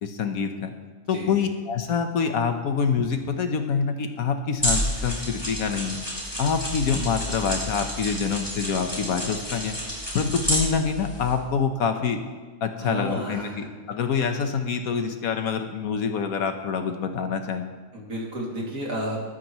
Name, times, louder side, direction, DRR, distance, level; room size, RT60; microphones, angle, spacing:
voice 1, 0.0-0.7 1.1-6.0 6.4-9.8 10.1-12.2 12.6-17.7, left 6 dB, 70° left, 6 dB, 1.4 m, -26 dB
voice 2, 1.1-1.4 12.8-13.7 17.9-19.2, equal, 65° right, -3 dB, 3.1 m, -32 dB
sound 1, 4.6-11.4, equal, 15° left, 4.3 m, -30 dB
22.0 x 9.2 x 3.1 m, 1.4 s
omnidirectional pair, 1.6 m